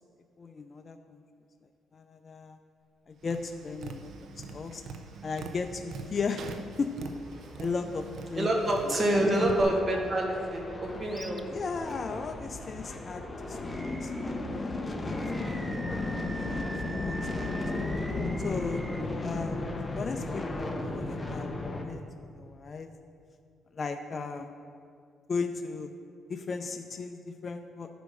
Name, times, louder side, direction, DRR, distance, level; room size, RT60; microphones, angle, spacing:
voice 1, 0.4-1.2 1.9-2.6 3.1-4.1 4.5-4.8 5.2-6.9 7.6-8.5 8.9-9.5 11.5-15.2 15.6-15.8 16.5-17.9 18.4-18.9 19.2-19.6 20.0-21.5 21.8-22.0 22.3-22.9 23.7-24.5 25.3-25.9 26.3-27.9, left 4 dB, 40° left, 6 dB, 0.4 m, -36 dB
Tap, 3.2-9.6, right 4 dB, 70° right, 0.7 m, -44 dB
sound 1, 7.1-21.8, left 2 dB, 25° left, 0.9 m, -35 dB
voice 2, 8.4-11.5, right 1 dB, 30° right, -1 dB, 1.8 m, -27 dB
Animal, 11.1-11.4 11.9-12.0 13.6-14.4 15.0-19.0, right 1 dB, 10° right, 0.5 m, -44 dB
9.5 x 5.1 x 6.2 m, 2.3 s
cardioid pair, 90°, 0 cm